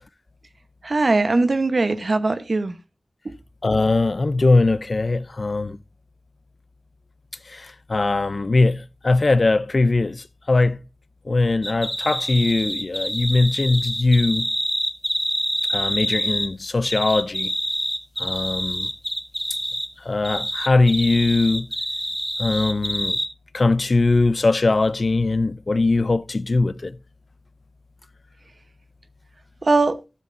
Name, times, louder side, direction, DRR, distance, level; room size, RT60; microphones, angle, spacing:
voice 1, 0.8-2.7 29.6-30.0, right 3 dB, 55° right, 0.9 m, -20 dB
voice 2, 3.6-5.8 7.5-10.8 11.3-14.5 15.7-17.5 18.2-18.9 20.0-21.7 22.4-23.2 23.5-27.0, left 3 dB, 55° left, 0.4 m, -20 dB
sound 1, 11.6-16.5 16.8-19.9 20.2-23.3, equal, ahead, 1.1 m, -26 dB
12.5 x 7.3 x 2.6 m
wide cardioid pair, 75°, 0 cm